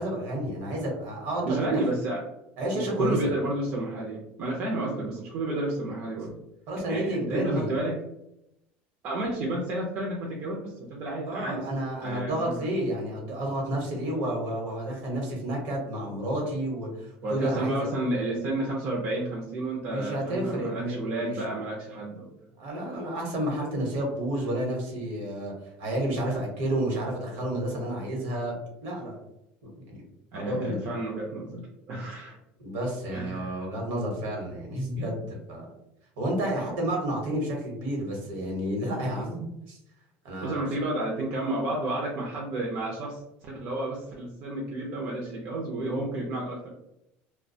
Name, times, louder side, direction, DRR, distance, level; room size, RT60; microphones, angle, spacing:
voice 1, 0.0-1.8 2.6-3.3 6.7-7.7 11.2-17.9 19.9-21.4 22.6-25.5 25.8-28.6 28.8-29.2 29.6-30.0 30.3-30.8 32.6-35.6 36.2-39.8 40.2-40.6, right 1 dB, 65° right, 0 dB, 1.0 m, -30 dB
voice 2, 1.4-2.3 2.7-6.3 6.9-8.0 9.0-12.7 17.2-22.3 30.3-32.4 33.1-33.6 40.4-46.7, right 2 dB, 45° right, -3 dB, 0.5 m, -31 dB
2.3 x 2.1 x 2.6 m, 0.84 s
cardioid pair, 160°, 5 cm